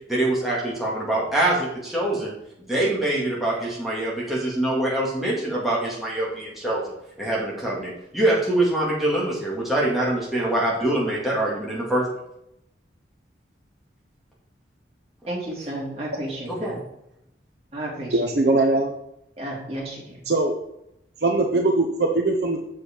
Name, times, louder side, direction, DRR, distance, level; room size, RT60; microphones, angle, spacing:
voice 1, 0.1-2.3 2.7-12.0 16.5-16.8, right 1 dB, ahead, -6 dB, 2.3 m, -24 dB
voice 2, 15.2-16.8 17.7-18.4 19.4-20.2, right 1 dB, 35° right, -4 dB, 2.9 m, -32 dB
voice 3, 18.1-18.9 20.3-20.5 21.2-22.6, right 2 dB, 60° right, 2 dB, 0.9 m, -21 dB
7.6 x 6.4 x 4.5 m, 0.81 s
head